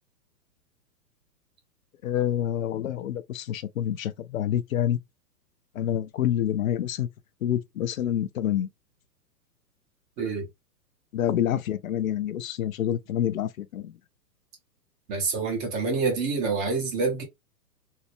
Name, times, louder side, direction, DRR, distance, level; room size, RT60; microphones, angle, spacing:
voice 1, 2.0-5.0 5.7-7.1 7.4-8.7 11.1-13.9, left 11 dB, 60° left, 0.5 m, -27 dB
voice 2, 10.2-10.5 15.1-17.2, right 4 dB, 15° right, 0.5 m, -27 dB
3.2 x 2.1 x 3.1 m
figure-of-eight pair, 115°, 49 cm